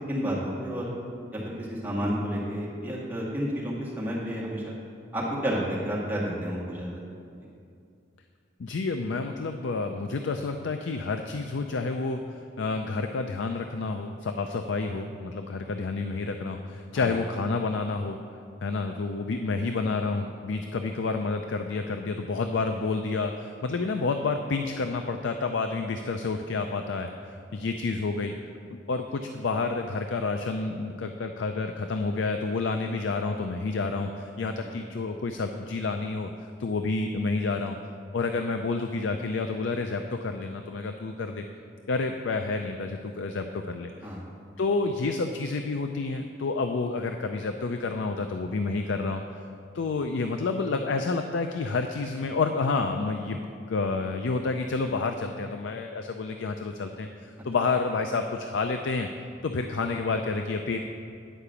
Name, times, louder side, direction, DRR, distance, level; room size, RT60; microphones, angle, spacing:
voice 1, 0.1-0.9 1.3-4.7 5.1-7.0 16.9-17.1 34.6-34.7 44.0-44.2, equal, 10° right, -7 dB, 2.0 m, -31 dB
voice 2, 8.6-18.2 18.6-28.3 28.7-36.3 36.6-37.8 38.1-41.4 41.9-43.9 44.6-49.2 49.7-53.4 53.7-59.1 59.4-60.8, left 3 dB, 80° left, 6 dB, 0.4 m, -29 dB
10.0 x 4.9 x 6.8 m, 2.4 s
head